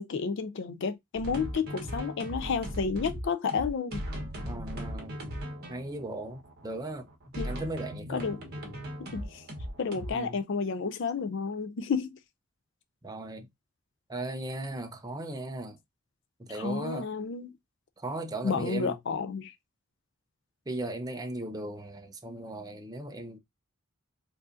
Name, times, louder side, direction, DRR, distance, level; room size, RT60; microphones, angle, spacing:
voice 1, 0.0-4.0 7.4-7.5 8.1-8.4 9.0-9.4 9.8-12.2 16.5-17.5 18.4-19.5, left 5 dB, 60° left, 0.4 m, -31 dB
sound 1, 1.2-10.1, equal, 50° right, 1.4 m, -38 dB
voice 2, 4.5-5.2 5.7-7.1 7.4-8.3 10.1-10.4 13.0-13.5 14.1-15.8 16.4-17.1 18.0-19.0 20.7-23.4, right 2 dB, 20° right, 0.6 m, -37 dB
4.7 x 2.6 x 2.4 m
head